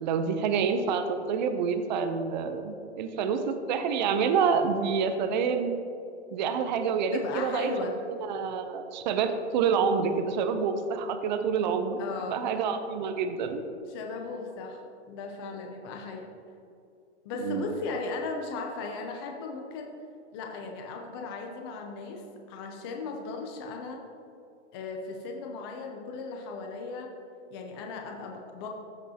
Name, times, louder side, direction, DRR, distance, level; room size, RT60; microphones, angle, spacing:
voice 1, 0.0-5.8 6.3-7.9 8.2-12.0 12.3-13.6 17.4-17.6, right 6 dB, 40° right, 8 dB, 0.6 m, -27 dB
voice 2, 7.1-8.0 12.0-12.4 13.9-14.8 15.1-16.3 17.2-20.0 20.3-24.0 24.7-27.1 27.5-28.7, left 3 dB, 20° left, 2 dB, 0.5 m, -37 dB
14.0 x 5.2 x 2.8 m, 2.6 s
hypercardioid pair, 155°, 35 cm